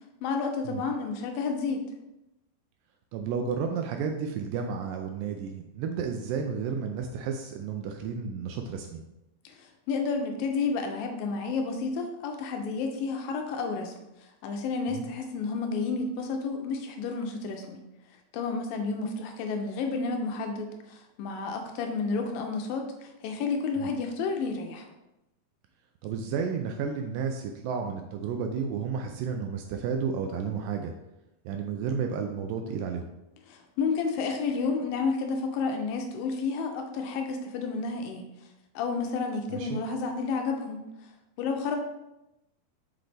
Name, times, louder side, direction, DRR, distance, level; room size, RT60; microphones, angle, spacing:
voice 1, 0.2-1.9 9.4-13.9 14.2-17.8 18.3-24.9 33.5-38.2 38.8-40.8 41.4-41.8, left 4 dB, 80° left, 4 dB, 2.2 m, -31 dB
voice 2, 3.1-9.0 14.9-15.0 23.8-23.9 26.0-30.9 31.5-33.0 39.5-39.8, right 6 dB, 80° right, 4 dB, 2.0 m, -32 dB
5.8 x 5.1 x 3.3 m, 0.92 s
omnidirectional pair, 4.3 m